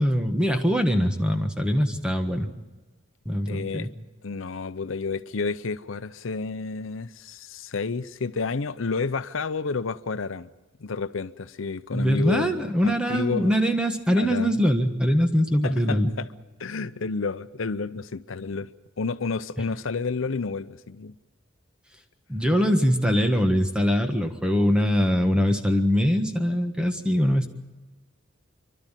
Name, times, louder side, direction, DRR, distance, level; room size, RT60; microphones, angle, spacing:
voice 1, 0.0-2.5 3.2-3.9 11.9-16.1 22.3-27.5, equal, 5° right, 1.5 m, -22 dB
voice 2, 3.5-3.9 4.2-10.5 10.8-12.5 12.8-13.5 14.2-14.6 15.6-16.3 16.6-18.7 19.0-21.1, left 4 dB, 75° left, 0.7 m, -30 dB
28.0 x 12.0 x 9.1 m
head